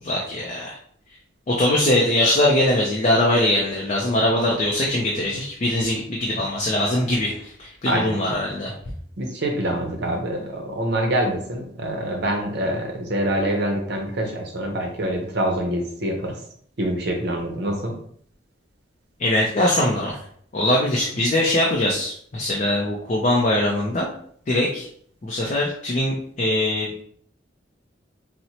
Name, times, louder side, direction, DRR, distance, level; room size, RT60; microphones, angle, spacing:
voice 1, 0.0-0.8 1.5-8.7 19.2-20.2 20.5-24.1 24.5-24.9 25.2-27.0, left 1 dB, 35° left, -2 dB, 0.5 m, -22 dB
voice 2, 7.9-8.2 9.2-16.4 16.8-17.9, right 1 dB, 60° right, 2 dB, 0.6 m, -25 dB
4.2 x 2.1 x 2.7 m, 0.63 s
head